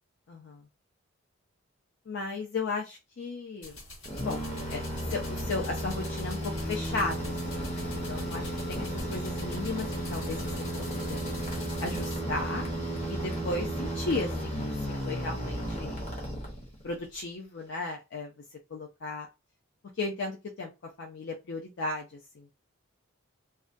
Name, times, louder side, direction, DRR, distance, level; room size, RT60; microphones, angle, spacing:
voice 1, 0.3-0.6 2.1-3.8 4.2-4.4 4.7-4.8 5.1-10.8 11.1-11.2 11.8-12.7 13.1-14.6 15.0-16.0 16.8-18.3 18.7-19.3 20.0-20.7 21.0-22.1 22.4-22.5, left 3 dB, 55° left, 0 dB, 0.4 m, -35 dB
sound 1, 3.6-12.2, left 1 dB, 80° left, 1.5 m, -46 dB
sound 2, 4.0-16.9, equal, 30° left, 0.8 m, -34 dB
2.3 x 2.1 x 2.5 m, 0.25 s
head